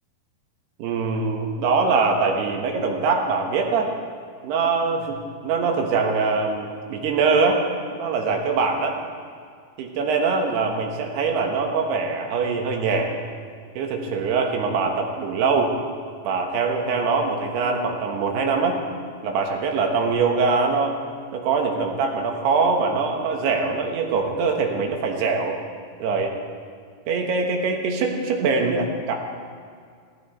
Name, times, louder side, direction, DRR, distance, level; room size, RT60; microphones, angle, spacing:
voice 1, 0.8-3.9 4.4-5.2 5.4-7.6 7.9-9.0 9.8-13.1 13.8-15.7 16.3-18.8 19.2-20.9 21.3-25.6 26.0-26.3 27.1-29.2, right 4 dB, 85° right, 2 dB, 3.5 m, -23 dB
17.5 x 14.0 x 4.3 m, 2.1 s
omnidirectional pair, 4.6 m